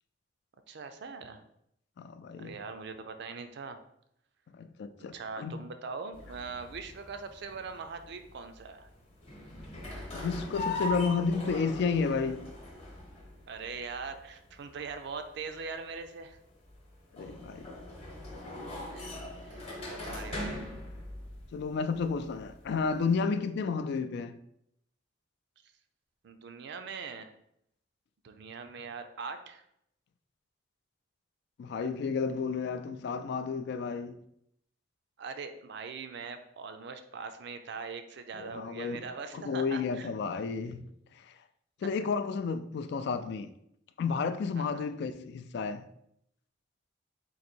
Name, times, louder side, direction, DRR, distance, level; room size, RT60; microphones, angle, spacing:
voice 1, 0.7-1.4 2.4-3.8 5.0-8.9 13.5-16.4 18.9-20.6 26.2-27.3 28.2-29.6 35.2-40.1 41.8-41.9 44.6-44.9, right 5 dB, 65° right, 0.4 m, -41 dB
voice 2, 2.0-2.6 4.5-5.6 10.1-12.4 17.1-17.8 21.5-24.3 31.6-34.2 38.4-39.1 39.3-40.8 41.2-41.3 41.8-43.5 44.0-45.8, left 5 dB, 60° left, 0.3 m, -32 dB
sound 1, 6.1-23.2, left 1 dB, 35° left, 0.9 m, -42 dB
3.9 x 2.6 x 4.4 m
head